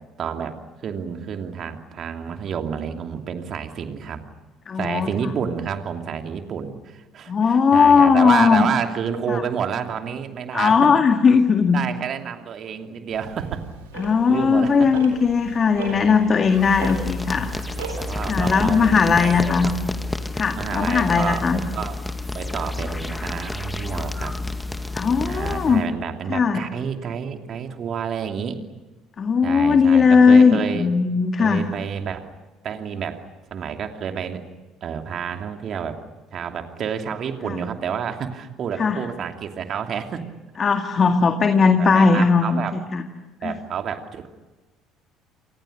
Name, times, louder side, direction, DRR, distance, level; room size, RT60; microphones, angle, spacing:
voice 1, 0.2-4.3 4.8-10.9 11.7-13.6 14.0-14.9 15.8-16.3 17.5-19.8 20.5-22.0 22.3-24.4 25.2-28.6 29.4-30.9 31.4-32.3 32.6-33.2 33.5-34.4 34.8-36.0 36.3-40.2 41.8-42.7 43.4-44.3, right 7 dB, 45° right, 6 dB, 2.8 m, -29 dB
voice 2, 4.7-5.1 7.3-8.6 9.3-9.4 10.5-11.8 14.0-17.5 18.3-19.7 20.3-21.6 24.9-25.8 26.3-26.6 29.2-31.6 37.5-37.6 38.8-39.0 40.6-43.0 43.4-43.5, left 5 dB, 35° left, 6 dB, 2.0 m, -18 dB
Tick-tock, 13.1-18.7, right 6 dB, 75° right, 4.4 m, -37 dB
sound 1, 16.5-25.9, left 2 dB, 10° left, 2.1 m, -30 dB
29.5 x 26.5 x 6.7 m, 1.2 s
figure-of-eight pair, 55°, 0 cm